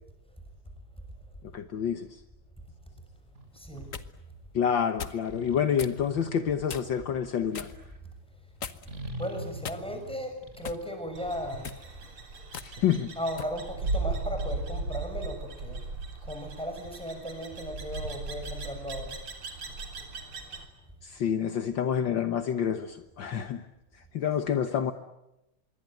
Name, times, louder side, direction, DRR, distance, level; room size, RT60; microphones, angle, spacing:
voice 1, 1.5-2.2 4.5-7.7 12.6-13.1 21.0-23.6 24.1-24.9, left 8 dB, 65° left, 9 dB, 1.8 m, -28 dB
sound 1, 3.3-4.0 5.2-8.0 8.9-12.1, right 1 dB, 30° right, 3.8 m, -44 dB
voice 2, 3.5-3.9 9.2-12.0 13.1-15.9 16.2-19.2, equal, ahead, 5 dB, 6.4 m, -36 dB
sound 2, 3.6-4.1 5.0-5.3 5.8-6.0 6.7-7.0 7.5-7.8 8.6-9.0 9.6-10.1 10.6-10.9 11.5-11.8 12.5-12.7 13.4-13.6, left 6 dB, 45° left, 1.4 m, -39 dB
sound 3, 11.2-20.7, right 3 dB, 85° right, 4.4 m, -37 dB
26.0 x 23.0 x 9.2 m, 0.90 s
omnidirectional pair, 2.3 m